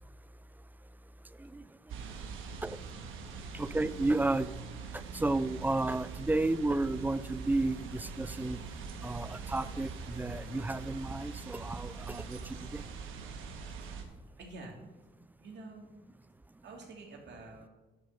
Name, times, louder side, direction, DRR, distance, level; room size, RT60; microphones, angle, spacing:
sound 1, 1.9-14.0, right 5 dB, 85° right, 1.3 m, -43 dB
voice 1, 3.5-4.5 5.1-8.6 9.0-12.4 12.7-12.8, right 2 dB, 10° right, 16 dB, 0.4 m, -32 dB
voice 2, 14.4-14.8 15.4-15.9 16.6-17.7, right 3 dB, 60° right, 0 dB, 2.5 m, -48 dB
10.0 x 4.9 x 6.7 m, 1.2 s
cardioid pair, 90°, 20 cm